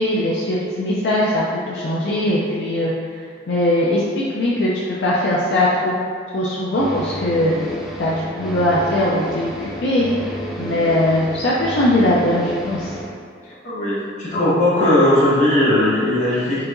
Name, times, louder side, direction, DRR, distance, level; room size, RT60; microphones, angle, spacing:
voice 1, 0.0-2.9 3.5-5.9 6.3-7.5 8.0-10.1 10.6-12.9, left 1 dB, 65° left, -6 dB, 0.4 m, -20 dB
sound 1, 6.7-13.1, equal, ahead, 0.4 m, -31 dB
voice 2, 13.4-16.6, left 1 dB, 40° left, -8 dB, 1.0 m, -18 dB
4.6 x 2.8 x 2.5 m, 2.1 s
head